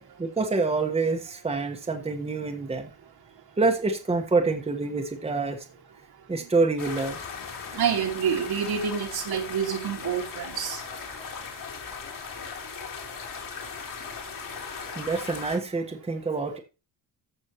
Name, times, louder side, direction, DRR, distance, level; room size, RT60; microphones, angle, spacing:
voice 1, 0.2-2.9 3.6-5.6 6.3-7.2 14.9-16.6, right 3 dB, 15° right, 1.3 m, -26 dB
sound 1, 6.8-15.6, left 5 dB, 50° left, 3.2 m, -38 dB
voice 2, 7.7-10.9, right 7 dB, 60° right, 2.0 m, -28 dB
14.5 x 6.4 x 3.0 m
wide cardioid pair, 180°, 43 cm